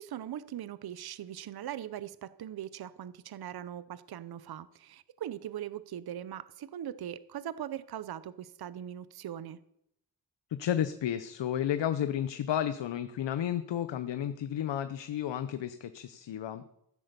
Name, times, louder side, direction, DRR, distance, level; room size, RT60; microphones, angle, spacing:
voice 1, 0.0-9.6, right 10 dB, 60° right, 16 dB, 0.6 m, -40 dB
voice 2, 10.5-16.7, left 10 dB, 80° left, 11 dB, 0.8 m, -32 dB
15.0 x 8.0 x 6.7 m, 0.77 s
wide cardioid pair, 110°, 43 cm